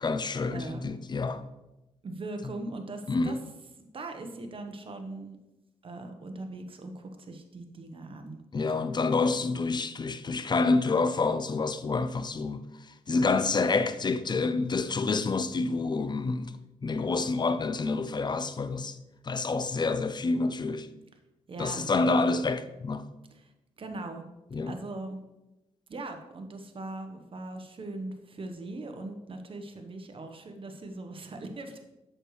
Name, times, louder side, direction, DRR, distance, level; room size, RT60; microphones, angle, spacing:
voice 1, 0.0-1.4 3.1-3.4 8.5-12.7 13.1-16.5 16.8-19.0 19.2-20.9 21.6-23.1 24.5-24.8, left 3 dB, 40° left, 0.5 m, -28 dB
voice 2, 0.5-0.9 2.0-3.4 3.8-5.4 5.8-8.4 21.5-21.9 23.3-23.5 23.8-24.2 24.7-25.2 25.9-31.8, right 2 dB, 50° right, 1.1 m, -40 dB
7.7 x 6.5 x 3.2 m
cardioid pair, 65°, 12 cm